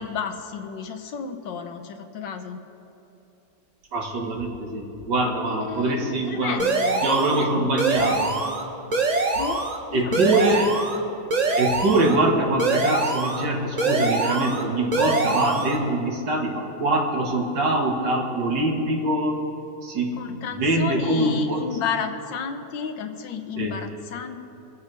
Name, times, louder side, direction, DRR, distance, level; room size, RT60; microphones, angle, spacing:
voice 1, 0.0-2.6 5.5-7.7 9.3-9.6 9.9-10.4 20.2-24.4, left 6 dB, 75° left, 6 dB, 1.5 m, -32 dB
voice 2, 3.9-6.6 7.0-8.3 9.9-10.7 11.5-19.4 19.8-21.7 23.6-23.7, right 2 dB, 65° right, 0 dB, 2.0 m, -24 dB
sound 1, 6.6-7.4 7.8-8.6 8.9-9.8 10.1-11.0 11.3-12.2 12.6-13.4 13.8-14.6 14.9-15.8, right 3 dB, 40° right, 0.5 m, -24 dB
24.0 x 8.3 x 3.3 m, 2.9 s
omnidirectional pair, 2.0 m